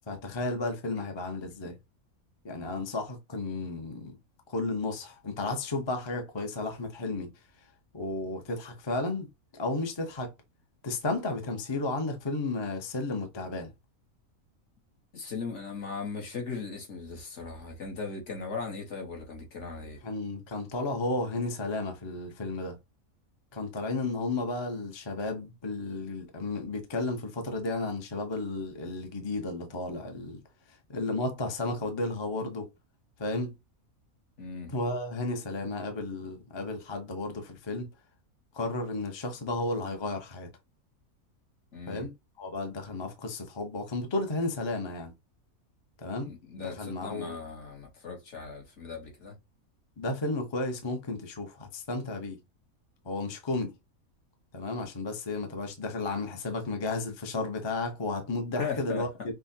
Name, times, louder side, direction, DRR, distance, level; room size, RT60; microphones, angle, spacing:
voice 1, 0.1-1.8 2.4-4.1 4.5-7.3 7.9-10.3 10.8-13.7 20.0-22.8 23.5-30.4 30.7-32.7 33.2-33.5 34.7-37.9 38.5-40.5 41.9-45.1 46.0-47.4 50.0-52.4 53.0-53.7 54.5-59.3, left 2 dB, 30° left, 0.6 m, -33 dB
voice 2, 15.1-20.0 34.4-34.7 41.7-42.1 46.2-49.3 58.6-59.1, left 5 dB, 55° left, 1.4 m, -38 dB
5.6 x 2.1 x 2.7 m
omnidirectional pair, 1.5 m